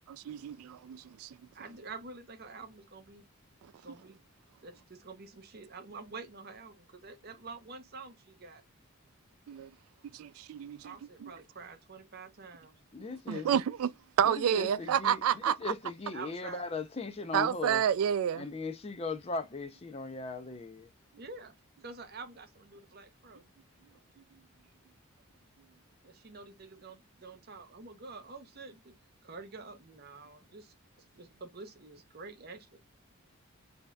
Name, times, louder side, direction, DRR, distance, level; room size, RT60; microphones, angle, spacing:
voice 1, 0.1-1.3 9.5-9.7 10.0-10.8 11.2-11.3 13.3-13.9 14.2-15.6 17.3-18.4, right 9 dB, 80° right, 0.3 m, -29 dB
voice 2, 1.5-3.3 3.8-4.2 4.6-8.6 10.8-12.7 13.3-13.5 16.1-16.7 21.2-21.6 21.8-23.4 26.0-29.0 29.2-30.7 31.2-32.8, right 4 dB, 45° right, 0.7 m, -47 dB
voice 3, 12.9-13.5 14.2-17.8 18.3-20.9, left 3 dB, 25° left, 0.4 m, -38 dB
5.3 x 2.7 x 2.2 m
head